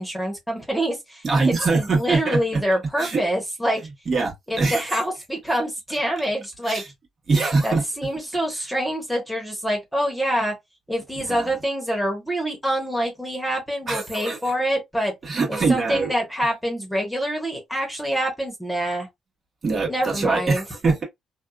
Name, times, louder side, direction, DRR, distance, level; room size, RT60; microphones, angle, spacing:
voice 1, 0.0-3.8 4.5-6.8 7.6-10.5 10.9-15.1 15.5-19.1 19.9-20.6, equal, 5° left, 1.1 m, -26 dB
voice 2, 1.2-2.6 3.0-3.2 4.1-5.0 6.7-6.8 7.3-7.8 11.3-11.5 13.9-14.5 15.2-16.1 19.6-21.0, right 3 dB, 45° right, 1.2 m, -23 dB
2.6 x 2.3 x 2.3 m
cardioid pair, 90°, 0 cm